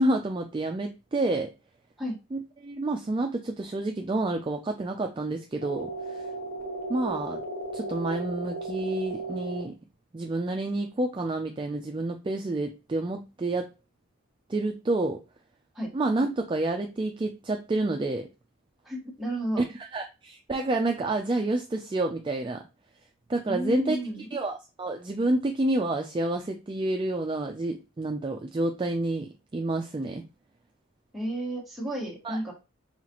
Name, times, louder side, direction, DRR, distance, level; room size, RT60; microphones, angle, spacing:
voice 1, 0.0-1.5 2.3-6.3 6.9-7.4 7.7-9.7 10.1-13.7 14.5-15.2 15.9-18.3 19.6-22.6 23.3-24.0 24.3-30.2 32.2-32.4, right 2 dB, 20° right, 4 dB, 0.3 m, -29 dB
sound 1, 5.6-9.6, right 3 dB, 40° right, 1.1 m, -35 dB
voice 2, 18.8-19.6 23.4-24.2 31.1-32.5, equal, ahead, -5 dB, 1.4 m, -32 dB
5.6 x 2.4 x 2.9 m, 0.29 s
head